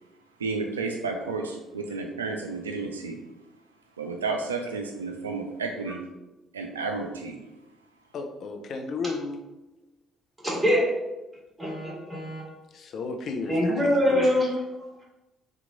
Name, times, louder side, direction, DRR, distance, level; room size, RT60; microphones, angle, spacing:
voice 1, 0.4-3.2 4.0-6.0 6.5-7.4, right 4 dB, 90° right, 3 dB, 0.3 m, -31 dB
voice 2, 8.1-9.4 12.7-13.6 13.8-14.3, left 4 dB, 55° left, 4 dB, 0.5 m, -33 dB
voice 3, 10.4-10.9 11.6-12.4 13.5-14.5, equal, 15° right, -6 dB, 1.5 m, -23 dB
2.9 x 2.4 x 3.7 m, 1.0 s
hypercardioid pair, 50°, 0 cm